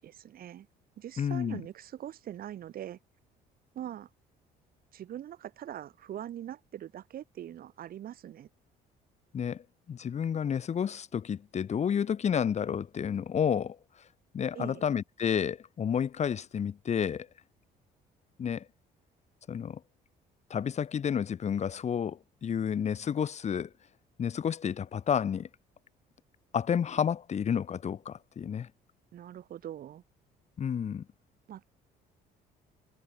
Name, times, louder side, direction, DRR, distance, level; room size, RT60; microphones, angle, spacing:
voice 1, 0.0-0.7 1.0-3.0 3.7-4.1 4.9-8.5 14.5-14.8 29.1-30.0 31.5-31.6, right 11 dB, 60° right, 7.8 m, -42 dB
voice 2, 1.2-1.6 9.3-13.8 14.3-17.3 18.4-18.7 19.5-19.8 20.5-23.7 24.2-25.5 26.5-28.7 30.6-31.0, left 8 dB, 40° left, 2.5 m, -30 dB
cardioid pair, 110°, 17 cm